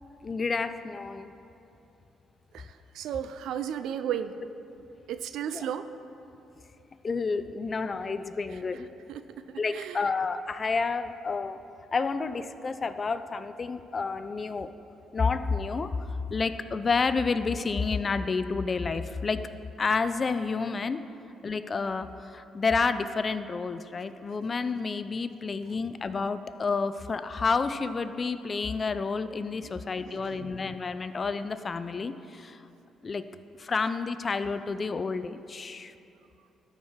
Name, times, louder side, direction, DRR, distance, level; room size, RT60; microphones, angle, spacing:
voice 1, 0.2-1.3 5.5-5.7 7.0-8.9 9.6-11.6 11.9-14.7 15.1-16.0 16.3-19.4 19.8-21.0 21.4-32.6 33.0-33.2 33.6-35.9, left 4 dB, 35° left, 12 dB, 0.3 m, -30 dB
voice 2, 2.5-4.3 5.1-5.9 8.5-10.1 29.6-29.7 30.0-30.6, right 9 dB, 80° right, 11 dB, 0.3 m, -35 dB
13.0 x 4.7 x 3.6 m, 2.8 s
cardioid pair, 90°, 0 cm